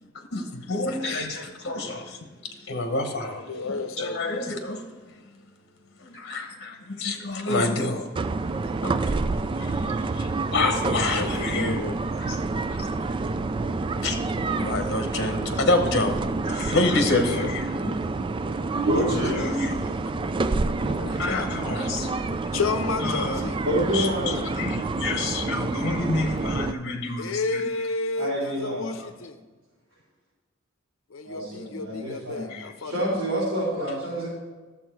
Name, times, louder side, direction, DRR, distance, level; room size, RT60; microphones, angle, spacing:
voice 1, 0.0-3.5 4.0-5.2 6.0-8.1 8.8-11.8 12.2-12.4 12.6-13.5 14.0-14.2 14.6-17.7 19.0-19.8 21.2-22.2 23.0-23.4 23.9-27.6 29.0-29.1 32.5-32.7, left 2 dB, 55° left, 1.1 m, -28 dB
voice 2, 3.3-4.5 10.6-10.7 11.1-12.0 17.3-17.5 18.7-19.5 20.2-21.5 21.9-22.0 22.5-23.6 27.2-29.4 31.1-33.1, left 3 dB, 75° left, 0.7 m, -32 dB
sound 1, 8.2-26.7, right 3 dB, 25° right, 0.3 m, -28 dB
voice 3, 18.9-19.4 23.7-24.5 28.2-29.0 31.2-32.5 32.8-34.3, equal, 85° right, 3.5 m, -27 dB
12.0 x 7.2 x 4.6 m
head